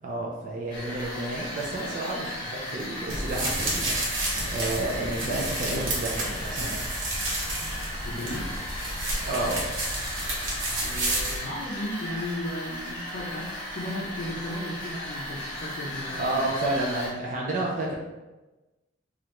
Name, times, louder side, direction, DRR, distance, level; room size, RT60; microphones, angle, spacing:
voice 1, 0.0-6.9 9.2-9.7 16.2-17.9, right 2 dB, 45° right, -3 dB, 0.5 m, -31 dB
sound 1, 0.7-17.1, left 1 dB, 25° left, 1.4 m, -36 dB
sound 2, 3.1-11.4, right 1 dB, 85° right, 0.9 m, -31 dB
voice 2, 8.0-8.7 10.8-16.5, left 1 dB, 60° left, -7 dB, 0.5 m, -35 dB
3.1 x 2.4 x 3.0 m, 1.1 s
head